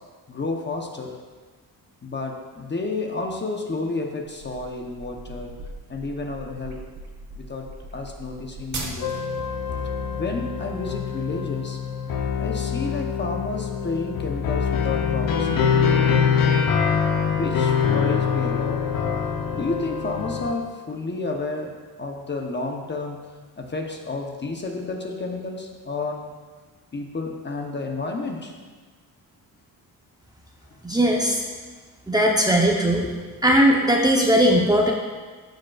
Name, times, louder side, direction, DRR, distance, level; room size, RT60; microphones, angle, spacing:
voice 1, 0.3-1.2 2.0-5.5 5.9-6.8 7.4-9.1 10.1-11.8 12.4-15.9 17.3-18.9 19.5-23.3 23.6-26.4 26.9-28.5 33.0-33.2, left 3 dB, 30° left, 2 dB, 0.8 m, -31 dB
sound 1, 4.4-9.4, right 2 dB, 45° right, 1.5 m, -38 dB
sound 2, 9.0-20.5, left 6 dB, 60° left, 0.8 m, -24 dB
voice 2, 30.8-31.4 32.1-33.0 33.4-34.9, equal, 10° right, -1 dB, 0.8 m, -18 dB
15.0 x 5.1 x 2.4 m, 1.4 s
cardioid pair, 105°, 38 cm